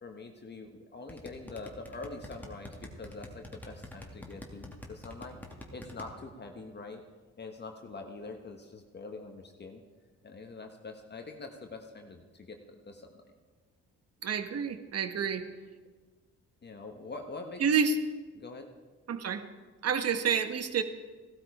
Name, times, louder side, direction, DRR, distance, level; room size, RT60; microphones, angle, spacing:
voice 1, 0.0-7.0 7.3-9.8 10.2-12.6 12.8-13.3 16.6-17.6 18.3-18.6, left 3 dB, 35° left, 3 dB, 1.3 m, -44 dB
sound 1, 1.1-6.0, left 1 dB, 5° left, 2.2 m, -45 dB
voice 2, 14.2-15.4 17.6-18.0 19.1-19.4 19.8-20.8, right 6 dB, 55° right, 9 dB, 1.3 m, -28 dB
15.5 x 12.5 x 4.9 m, 1.3 s
cardioid pair, 90°, 30 cm